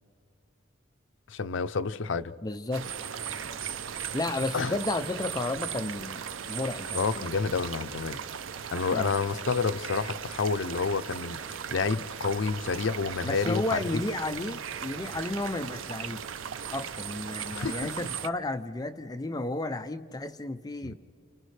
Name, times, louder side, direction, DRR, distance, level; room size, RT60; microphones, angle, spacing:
voice 1, 1.3-2.3 4.5-4.8 6.9-8.2 8.7-14.0 17.5-17.8 20.8-20.9, left 4 dB, 75° left, 0.5 m, -29 dB
voice 2, 2.4-2.9 3.9-7.3 8.9-9.2 13.2-16.3 16.7-20.9, left 2 dB, 20° left, 0.5 m, -33 dB
sound 1, 2.7-18.3, right 8 dB, 90° right, 0.5 m, -37 dB
29.5 x 29.0 x 3.3 m
head